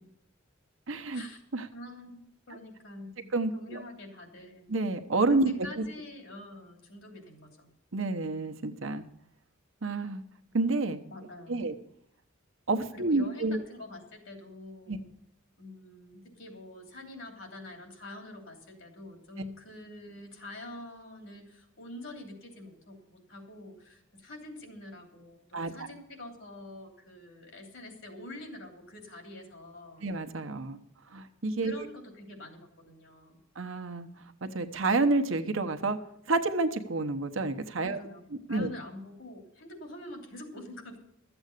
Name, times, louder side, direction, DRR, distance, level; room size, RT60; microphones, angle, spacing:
voice 1, 0.9-1.2 1.5-1.7 3.3-3.8 4.7-5.9 7.9-9.0 9.8-10.2 10.5-11.0 11.5-11.8 12.7-13.6 14.9-15.0 25.5-25.9 30.0-30.8 31.1-31.9 33.6-34.1 34.4-36.0 36.3-38.0 38.5-38.7, right 3 dB, 70° right, 7 dB, 1.0 m, -29 dB
voice 2, 1.7-3.3 3.5-4.7 5.3-7.7 11.1-11.7 12.9-15.1 15.6-30.1 31.6-33.4 37.8-41.0, left 1 dB, 75° left, 3 dB, 3.0 m, -46 dB
13.0 x 8.0 x 6.6 m, 0.77 s
head